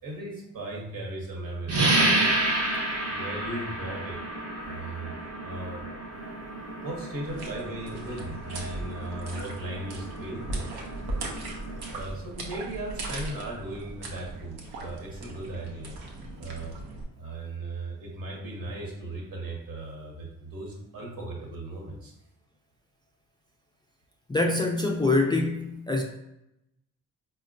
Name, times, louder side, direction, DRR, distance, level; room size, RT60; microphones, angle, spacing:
voice 1, 0.0-1.8 3.1-4.2 4.6-5.1 5.4-5.8 6.8-10.6 11.9-15.9 16.4-16.7 17.2-22.1, right 2 dB, 65° right, 1.1 m, -37 dB
sound 1, 1.7-12.0, right 2 dB, 40° right, 0.9 m, -30 dB
sound 2, 7.2-17.0, right 2 dB, 85° right, 0.7 m, -38 dB
voice 2, 24.3-26.0, left 2 dB, 15° left, 0.3 m, -25 dB
4.1 x 2.2 x 2.5 m
cardioid pair, 60°, 37 cm